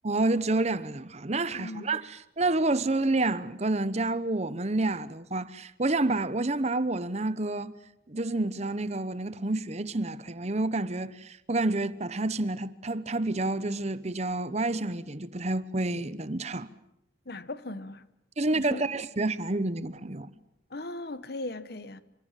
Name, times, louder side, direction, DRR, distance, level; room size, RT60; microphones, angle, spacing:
voice 1, 0.0-7.7 8.1-16.7 18.4-20.3, right 2 dB, 35° right, 1.0 m, -29 dB
voice 2, 1.5-2.0 17.3-18.0 18.5-18.9 20.7-22.0, left 2 dB, 60° left, 1.2 m, -38 dB
27.5 x 25.0 x 7.5 m
head